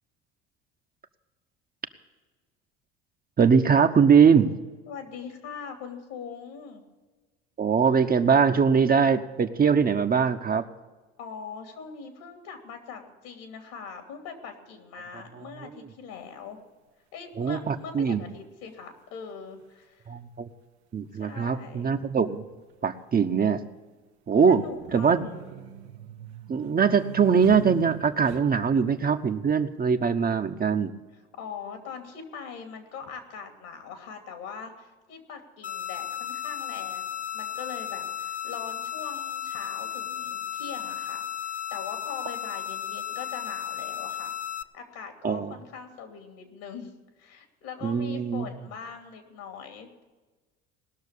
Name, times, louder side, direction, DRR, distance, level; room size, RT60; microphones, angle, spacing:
voice 1, 3.4-4.6 7.6-10.6 17.4-18.2 20.1-20.5 20.9-22.4 22.8-23.6 24.3-24.6 24.9-25.3 26.5-30.9 45.2-45.5 47.8-48.5, right 6 dB, 30° right, 7 dB, 0.9 m, -22 dB
voice 2, 4.9-6.8 11.2-16.6 17.1-20.1 21.2-21.9 24.5-25.6 31.1-44.3 44.7-50.0, left 6 dB, 70° left, 5 dB, 2.8 m, -42 dB
sound 1, 16.2-16.3 17.8-17.9 19.3-19.4 19.6-19.7 21.5-21.7 21.9-22.0 22.7-23.2 24.6-28.8, right 10 dB, 85° right, 0.9 m, -43 dB
sound 2, 35.6-44.6, left 10 dB, 25° left, 0.5 m, -34 dB
19.0 x 6.4 x 8.3 m, 1.3 s
hypercardioid pair, 75°, 32 cm